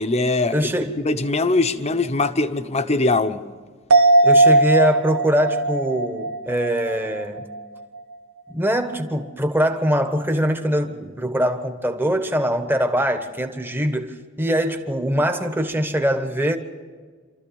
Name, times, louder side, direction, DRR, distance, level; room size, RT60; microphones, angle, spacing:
voice 1, 0.0-0.7 1.0-3.4, left 2 dB, 30° left, 9 dB, 0.9 m, -21 dB
voice 2, 0.5-0.9 4.2-7.5 8.5-16.6, equal, 10° right, 6 dB, 1.3 m, -22 dB
sound 1, 3.9-7.6 7.9-8.0, right 2 dB, 80° right, 1.1 m, -18 dB
27.5 x 14.0 x 7.0 m, 1.5 s
head